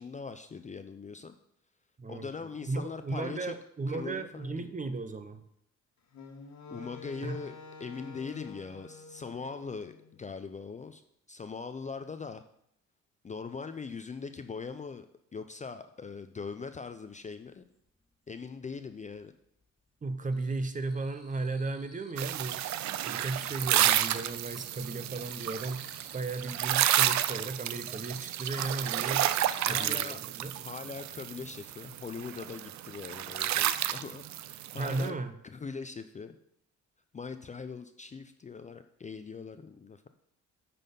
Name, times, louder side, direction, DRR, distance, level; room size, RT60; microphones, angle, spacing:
voice 1, 0.0-1.4 2.1-3.5 3.9-4.7 6.7-11.0 11.3-12.4 13.2-15.1 15.3-17.6 18.3-19.3 29.4-30.2 30.6-35.2 35.4-36.4 37.1-40.1, left 5 dB, 25° left, 9 dB, 0.5 m, -41 dB
voice 2, 2.0-5.4 7.2-7.4 20.0-22.6 23.1-29.3 29.7-30.6 34.8-35.3, right 3 dB, 25° right, 10 dB, 0.7 m, -35 dB
Wind instrument woodwind instrument, 6.1-10.3, left 3 dB, 65° left, 1.5 m, -49 dB
sound 1, 17.4-18.4 18.7-19.4 19.6-22.3 22.5-26.7 27.1-30.0, right 1 dB, ahead, 2.0 m, -56 dB
sound 2, 22.2-35.1, right 12 dB, 65° right, 0.5 m, -31 dB
9.1 x 4.2 x 5.3 m, 0.73 s
cardioid pair, 90°, 30 cm